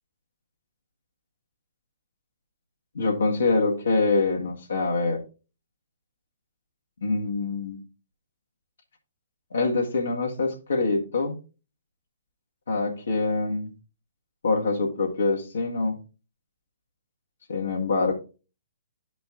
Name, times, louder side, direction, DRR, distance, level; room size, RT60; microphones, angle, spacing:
voice 1, 2.9-5.2 7.0-7.8 9.5-11.4 12.7-13.7 14.4-16.0 17.5-18.1, left 3 dB, 70° left, -1 dB, 1.7 m, -25 dB
12.5 x 5.1 x 2.4 m, 0.33 s
figure-of-eight pair, 120°, 0 cm